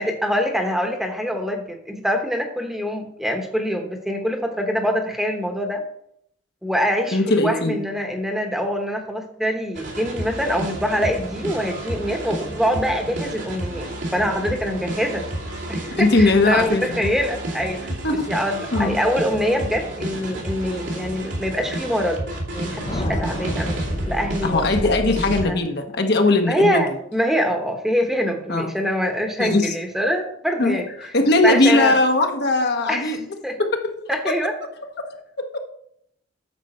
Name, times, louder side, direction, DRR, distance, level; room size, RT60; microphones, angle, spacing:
voice 1, 0.0-5.9 6.6-15.2 15.7-17.9 18.3-22.2 22.5-24.9 25.4-25.6 26.4-30.9 31.4-32.0 32.9-33.2 33.4-33.6 34.1-34.5, equal, ahead, 4 dB, 1.1 m, -24 dB
voice 2, 7.1-7.8 15.9-17.1 18.0-18.3 18.7-19.0 24.4-26.8 28.5-28.7 29.4-29.7 30.6-33.2 33.6-33.8 35.1-35.6, left 2 dB, 60° left, 4 dB, 1.1 m, -20 dB
sound 1, 9.7-25.4, right 1 dB, 80° right, 2.6 m, -30 dB
Thunder, 22.4-24.9, left 2 dB, 30° left, 0.6 m, -33 dB
8.9 x 6.8 x 4.3 m, 0.71 s
head